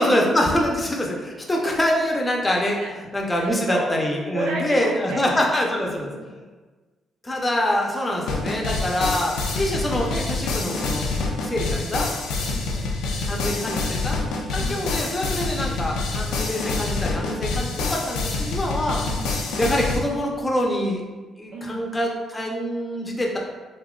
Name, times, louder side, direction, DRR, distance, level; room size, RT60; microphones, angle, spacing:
voice 1, 0.0-2.8 3.1-6.1 7.2-11.1 11.4-12.1 13.3-14.2 14.5-19.0 19.6-21.0 21.4-23.4, left 1 dB, 15° left, -1 dB, 0.6 m, -25 dB
voice 2, 3.4-3.9 4.3-5.4 6.0-6.4 12.4-12.9 14.5-14.9 19.0-19.5 21.5-21.9, right 1 dB, 90° right, -1 dB, 0.5 m, -33 dB
sound 1, 8.3-20.0, left 3 dB, 90° left, 0.5 m, -26 dB
3.6 x 2.7 x 2.3 m, 1.3 s
cardioid pair, 90°, 0 cm